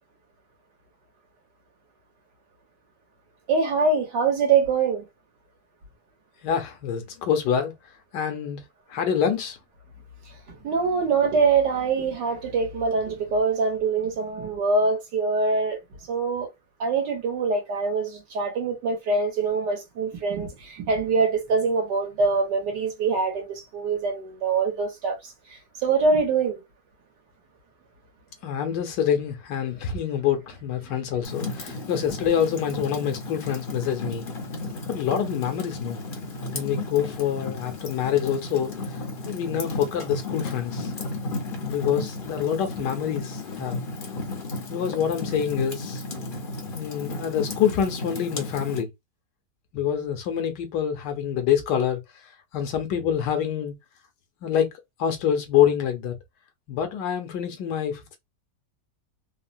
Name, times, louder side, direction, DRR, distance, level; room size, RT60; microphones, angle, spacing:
voice 1, 3.5-5.0 10.6-15.8 16.1-16.5 16.8-26.6 30.9-31.0, right 4 dB, 75° right, 1.6 m, -24 dB
voice 2, 6.4-7.7 8.1-8.6 8.9-9.6 28.4-34.3 34.9-36.0 36.5-38.7 39.3-40.9 41.6-43.8 44.4-46.0 46.7-48.9 49.7-52.0 52.5-53.7 54.4-54.7 55.0-56.1 56.7-58.2, left 9 dB, 75° left, 1.3 m, -26 dB
Fire, 31.2-48.8, left 2 dB, 50° left, 0.6 m, -34 dB
3.6 x 2.0 x 2.5 m
omnidirectional pair, 1.9 m